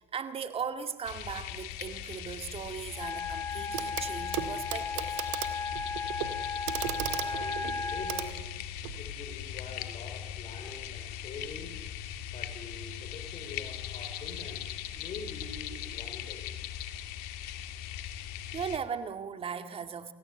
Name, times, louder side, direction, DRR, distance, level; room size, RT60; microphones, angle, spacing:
voice 1, 0.0-5.2 18.5-20.1, right 7 dB, 40° right, 2.2 m, -38 dB
sound 1, 1.0-18.8, left 11 dB, 75° left, 2.0 m, -40 dB
Wind instrument woodwind instrument, 2.9-8.3, left 4 dB, 20° left, 1.3 m, -35 dB
Clock, 3.7-4.1 4.3-9.0 10.3-10.4, right 13 dB, 85° right, 1.9 m, -37 dB
voice 2, 7.2-8.4 9.0-11.8 12.3-16.5, left 3 dB, 40° left, 4.6 m, -45 dB
29.0 x 17.0 x 8.1 m
supercardioid pair, 90°, 16 cm